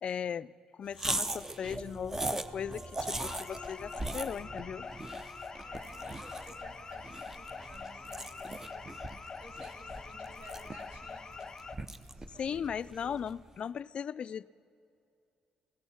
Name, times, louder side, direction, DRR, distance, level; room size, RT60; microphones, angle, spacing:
voice 1, 0.0-0.5 0.8-4.9 12.4-14.4, left 7 dB, 55° left, 17 dB, 0.3 m, -37 dB
sound 1, 0.9-13.4, right 2 dB, 20° right, 0.6 m, -40 dB
Wind instrument woodwind instrument, 1.2-5.7, left 2 dB, 35° right, 3.2 m, -55 dB
sound 2, 3.1-11.8, left 4 dB, 30° left, 0.8 m, -44 dB
voice 2, 5.6-9.0 9.4-11.4 12.1-12.7, right 1 dB, 55° right, 2 dB, 2.2 m, -55 dB
16.5 x 13.5 x 5.7 m, 2.5 s
cardioid pair, 90°, 2 cm